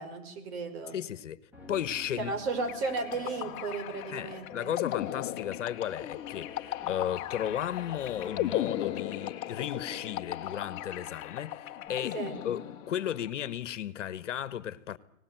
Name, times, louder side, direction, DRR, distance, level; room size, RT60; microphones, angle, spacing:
voice 1, 0.0-1.0 2.2-4.8 12.1-12.4, right 4 dB, 50° right, 5.6 m, -34 dB
voice 2, 0.9-1.4 1.7-2.3 4.1-12.2 12.4-15.0, left 10 dB, 60° left, 1.4 m, -35 dB
sound 1, 1.5-10.9 11.2-11.3, left 1 dB, 5° right, 5.5 m, -56 dB
sound 2, 2.4-13.3, left 6 dB, 10° left, 2.0 m, -49 dB
sound 3, 2.7-13.1, left 13 dB, 30° left, 1.3 m, -37 dB
24.5 x 19.0 x 9.3 m
hypercardioid pair, 130°, 40 cm